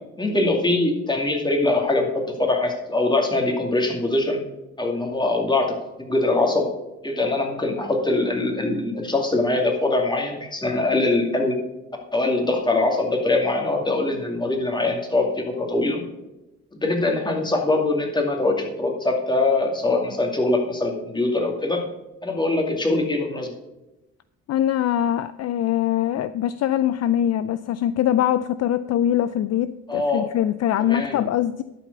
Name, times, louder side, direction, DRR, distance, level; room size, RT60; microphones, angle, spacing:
voice 1, 0.2-4.4 4.8-6.7 7.0-11.6 12.1-16.0 16.7-21.8 22.2-23.5 29.9-30.3 30.8-31.2, left 2 dB, 15° left, 1 dB, 2.4 m, -23 dB
voice 2, 24.5-31.6, left 11 dB, 55° left, 14 dB, 0.5 m, -23 dB
12.0 x 5.0 x 6.6 m, 0.98 s
cardioid pair, 90°, 30 cm